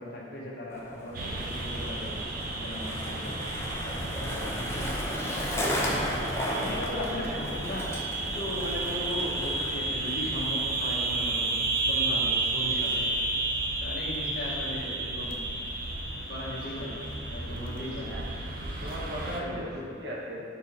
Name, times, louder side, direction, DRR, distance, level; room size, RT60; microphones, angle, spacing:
voice 1, 0.0-2.2 2.5-3.4 3.8-4.6 5.8-6.1 6.5-7.9 8.2-11.5 11.9-13.0 13.8-15.4 16.3-17.0 17.3-18.1 19.4-20.0, left 1 dB, 55° left, -4 dB, 1.1 m, -37 dB
Skateboard, 0.7-13.4, equal, 15° left, 0.7 m, -36 dB
sound 1, 1.1-19.4, right 2 dB, 50° right, 0.6 m, -32 dB
voice 2, 18.8-20.4, equal, 70° right, -4 dB, 1.1 m, -37 dB
5.0 x 4.6 x 4.1 m, 2.4 s
head